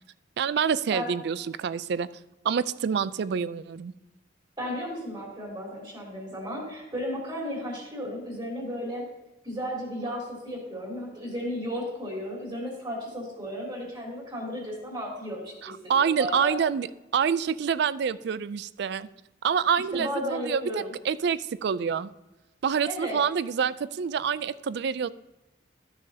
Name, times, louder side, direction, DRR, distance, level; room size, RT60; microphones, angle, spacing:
voice 1, 0.4-2.1 2.4-3.9 15.6-16.9 17.1-19.1 19.4-22.1 22.6-25.1, right 7 dB, 60° right, 16 dB, 0.3 m, -27 dB
voice 2, 4.6-9.0 9.4-16.5 19.9-20.9 22.8-23.2, equal, 25° right, -3 dB, 3.3 m, -34 dB
13.5 x 6.5 x 2.8 m, 1.0 s
head